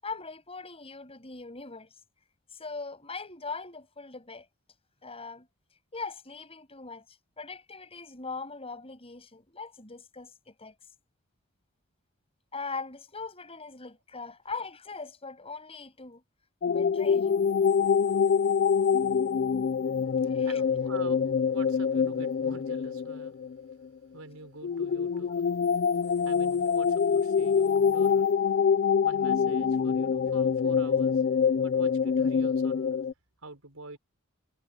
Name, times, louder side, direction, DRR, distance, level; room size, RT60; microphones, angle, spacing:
voice 1, 0.0-1.9 2.5-4.5 5.0-5.5 5.9-7.0 7.4-10.7 12.5-16.2 16.7-17.4 20.3-20.6 27.7-27.8, left 4 dB, 30° left, 7.5 m, -40 dB
sound 1, 16.6-23.7 24.6-33.1, left 6 dB, 50° left, 0.4 m, -25 dB
voice 2, 20.1-23.4 24.1-25.7 26.2-28.6 29.0-31.2 31.6-33.1 33.4-34.0, right 2 dB, 85° right, 5.2 m, -46 dB
head